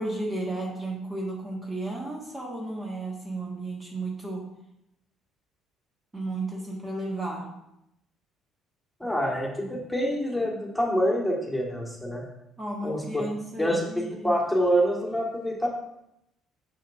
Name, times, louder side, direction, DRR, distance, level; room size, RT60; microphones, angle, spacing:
voice 1, 0.0-4.4 6.1-7.5 12.6-14.4 15.1-15.2, right 2 dB, 25° right, -2 dB, 1.5 m, -33 dB
voice 2, 9.0-12.2 12.8-13.2 13.6-13.8 14.2-15.7, equal, 5° left, -2 dB, 1.8 m, -26 dB
6.5 x 6.3 x 2.6 m, 0.83 s
hypercardioid pair, 55°, 0 cm